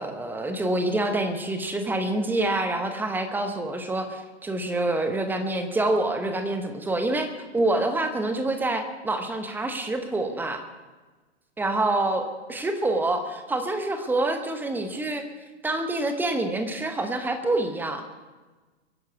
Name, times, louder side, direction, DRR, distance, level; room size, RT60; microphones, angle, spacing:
voice 1, 0.0-10.6 11.6-15.2 15.6-18.0, right 2 dB, 5° right, 7 dB, 1.0 m, -27 dB
23.5 x 10.5 x 4.7 m, 1.3 s
figure-of-eight pair, 120°, 35 cm